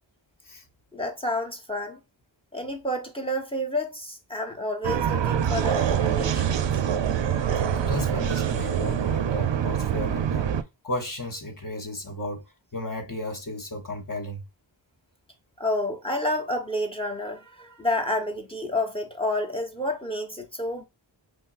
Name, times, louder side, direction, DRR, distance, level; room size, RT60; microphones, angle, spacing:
voice 1, 0.9-2.0 2.5-6.7 15.6-20.8, left 1 dB, 10° left, 0.9 m, -29 dB
sound 1, 4.8-10.6, right 8 dB, 70° right, 0.5 m, -25 dB
voice 2, 7.7-10.5 10.8-12.4 12.7-14.4, left 1 dB, 45° left, 1.0 m, -34 dB
5.6 x 2.0 x 2.4 m
wide cardioid pair, 50°, 47 cm